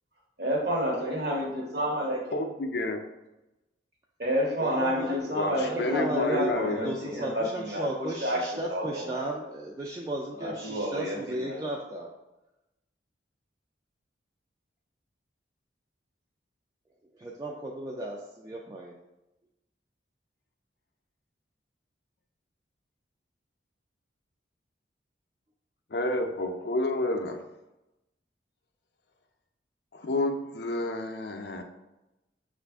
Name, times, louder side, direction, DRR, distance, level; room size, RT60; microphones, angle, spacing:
voice 1, 0.4-2.4 4.2-9.3 10.4-11.6, equal, 55° right, -1 dB, 1.1 m, -30 dB
voice 2, 2.3-3.0 5.3-7.2 25.9-27.4 29.9-31.6, left 2 dB, 60° left, 5 dB, 0.5 m, -30 dB
voice 3, 4.6-5.3 5.7-6.5 6.8-12.1 17.2-18.9, right 1 dB, 20° right, -2 dB, 0.3 m, -34 dB
5.8 x 2.4 x 3.4 m, 0.98 s
head